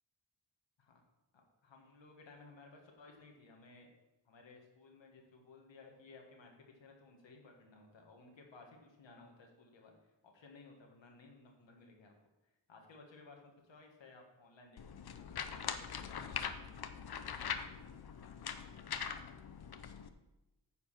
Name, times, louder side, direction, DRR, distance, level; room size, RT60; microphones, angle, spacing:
voice 1, 1.3-3.9 4.3-12.1 12.7-14.8 15.1-16.7, left 3 dB, 90° left, 2 dB, 1.7 m, -58 dB
sound 1, 14.8-20.1, left 7 dB, 60° left, 0.7 m, -42 dB
9.5 x 4.8 x 6.1 m, 1.0 s
cardioid pair, 65°, 43 cm